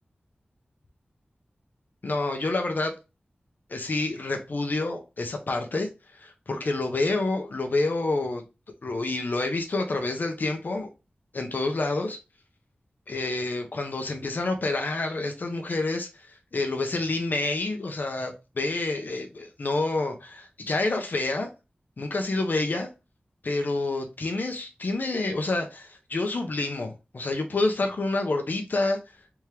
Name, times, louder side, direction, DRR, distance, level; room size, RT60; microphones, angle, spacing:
voice 1, 2.0-2.9 3.7-5.9 6.2-8.4 8.8-10.9 11.3-12.2 13.1-21.5 22.0-22.9 23.4-29.0, left 2 dB, 60° left, 0.7 m, -28 dB
3.5 x 3.2 x 3.0 m
wide cardioid pair, 95°, 4 cm